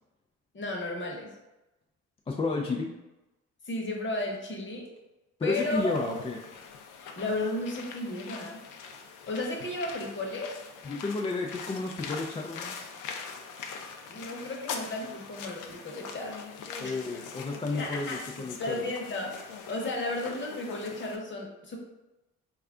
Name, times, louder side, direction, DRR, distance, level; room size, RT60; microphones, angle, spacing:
voice 1, 0.5-1.3 3.7-4.9 5.4-6.0 7.0-8.6 9.3-10.5 14.1-16.5 16.8-17.1 17.8-18.2 18.6-21.8, left 2 dB, 40° left, 0 dB, 0.9 m, -34 dB
voice 2, 2.3-2.9 5.4-6.4 10.8-12.8 16.8-18.8, left 3 dB, 20° left, 0 dB, 0.3 m, -32 dB
sound 1, 5.5-21.2, left 5 dB, 85° left, 0.5 m, -42 dB
3.3 x 2.4 x 3.5 m, 0.99 s
cardioid pair, 90°, 30 cm